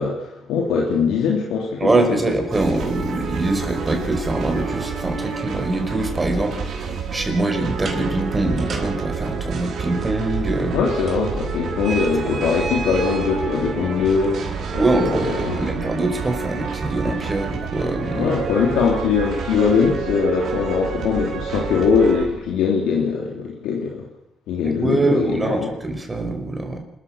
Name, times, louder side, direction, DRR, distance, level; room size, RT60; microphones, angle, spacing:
voice 1, 0.0-2.2 10.7-14.4 14.7-15.6 18.1-24.1 24.5-25.7, left 5 dB, 90° left, -1 dB, 3.3 m, -21 dB
voice 2, 1.8-10.8 14.8-18.3 24.6-26.8, right 2 dB, 20° right, 4 dB, 5.4 m, -23 dB
sound 1, 2.5-22.3, right 5 dB, 65° right, 5.4 m, -29 dB
sound 2, 7.7-18.6, right 4 dB, 45° right, 4.4 m, -35 dB
28.5 x 14.0 x 6.6 m, 0.89 s
cardioid pair, 90°, 0 cm